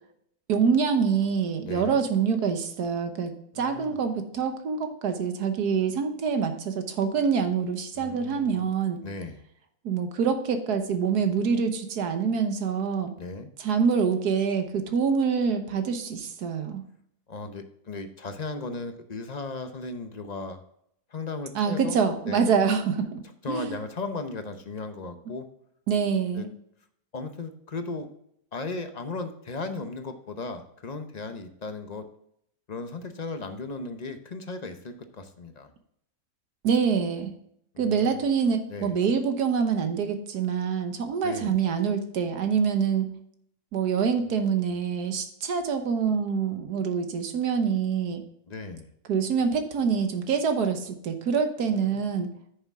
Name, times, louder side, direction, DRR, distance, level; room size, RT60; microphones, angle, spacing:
voice 1, 0.5-9.0 9.8-13.1 13.6-16.8 21.5-23.2 23.5-23.8 25.9-26.5 36.6-37.3 37.8-43.1 43.7-48.2 49.1-52.3, right 6 dB, 90° right, 7 dB, 1.6 m, -26 dB
voice 2, 1.6-2.0 3.5-4.0 7.9-8.7 9.0-9.4 13.2-13.5 17.3-20.6 21.1-22.0 22.3-22.4 23.4-25.5 26.3-26.5 27.1-28.1 28.5-32.1 32.7-35.7 37.7-38.3 38.7-39.0 41.2-41.6 48.5-48.9 51.7-52.2, left 3 dB, 35° left, 7 dB, 0.7 m, -36 dB
9.6 x 6.8 x 3.6 m, 0.71 s
omnidirectional pair, 1.7 m